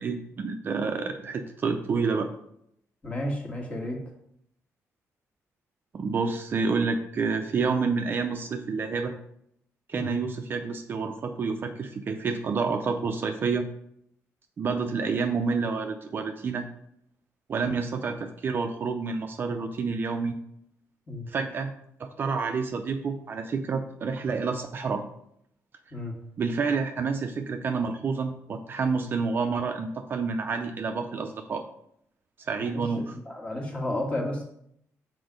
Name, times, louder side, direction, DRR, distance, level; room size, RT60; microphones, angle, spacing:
voice 1, 0.0-2.3 5.9-9.1 9.9-13.7 14.6-16.7 17.5-20.3 21.3-21.7 22.0-25.0 26.4-31.6 32.5-33.2, right 4 dB, 40° right, 5 dB, 0.5 m, -29 dB
voice 2, 3.0-4.0 9.9-10.1 21.1-21.3 25.9-26.1 32.6-32.8 33.1-34.4, left 1 dB, 20° left, -1 dB, 1.5 m, -32 dB
6.1 x 4.5 x 5.1 m, 0.73 s
cardioid pair, 160°, 6 cm